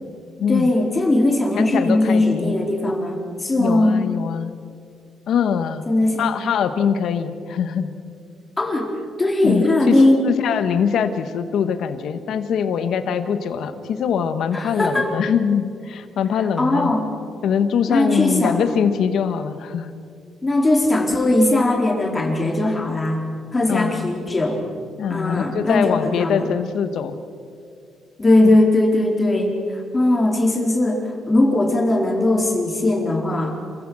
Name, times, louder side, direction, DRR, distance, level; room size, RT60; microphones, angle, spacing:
voice 1, 0.5-4.0 5.9-6.4 8.6-8.9 9.2-10.3 14.5-15.1 16.6-17.1 17.9-18.6 20.4-23.2 23.5-24.6 25.1-26.5 28.2-33.5, left 2 dB, 25° left, 1 dB, 4.1 m, -19 dB
voice 2, 1.6-2.6 3.6-4.5 5.3-5.8 6.2-7.9 9.4-10.0 10.3-16.9 17.4-19.9 23.7-24.1 25.0-27.1, left 7 dB, 70° left, 10 dB, 1.5 m, -23 dB
27.5 x 15.5 x 6.3 m, 2.3 s
cardioid pair, 90°, 0 cm